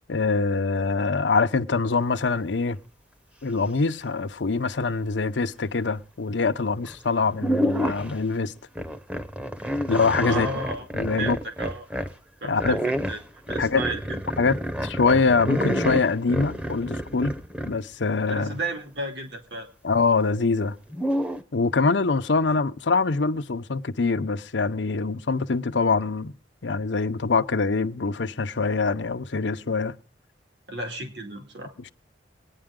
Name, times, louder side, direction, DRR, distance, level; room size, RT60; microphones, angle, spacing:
voice 1, 0.1-2.8 3.4-8.5 9.9-10.5 10.9-11.4 12.4-12.8 13.6-13.8 14.4-14.5 14.8-17.4 17.7-18.5 19.8-20.8 21.5-26.3 26.6-30.0, left 4 dB, 80° left, 0.7 m, -24 dB
sound 1, 6.8-7.0 7.4-8.2 8.8-12.1 12.6-17.8 20.9-21.4, equal, 5° right, 0.8 m, -29 dB
voice 2, 10.3-10.9 11.2-11.9 12.4-14.2 18.3-19.7 30.7-31.7, right 2 dB, 70° right, 2.6 m, -33 dB
23.0 x 9.7 x 3.7 m
head